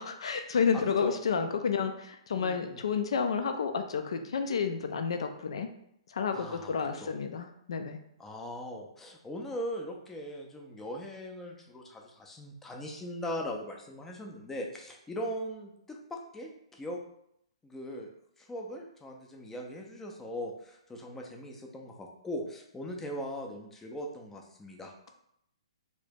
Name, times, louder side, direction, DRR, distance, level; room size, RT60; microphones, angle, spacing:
voice 1, 0.0-5.7 6.1-8.0, left 6 dB, 60° left, 7 dB, 0.4 m, -30 dB
voice 2, 0.7-1.2 2.3-2.8 6.3-7.1 8.2-17.0 17.6-18.1 18.4-25.1, equal, 10° left, 1 dB, 0.5 m, -40 dB
2.8 x 2.7 x 3.5 m, 0.74 s
figure-of-eight pair, 125°, 3 cm